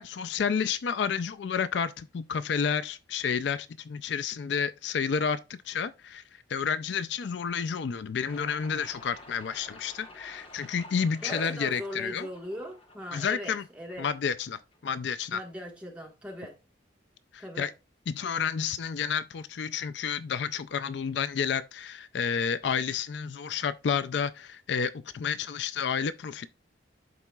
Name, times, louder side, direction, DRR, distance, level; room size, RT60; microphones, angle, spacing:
voice 1, 0.0-12.3 13.1-13.6 14.0-15.4 17.3-17.7 18.1-26.5, left 6 dB, 70° left, 0.4 m, -30 dB
sound 1, 8.3-14.8, left 2 dB, 30° left, 1.1 m, -47 dB
voice 2, 11.2-14.1 15.3-16.6 17.4-17.7, equal, 5° right, 1.4 m, -40 dB
11.5 x 4.0 x 2.3 m
head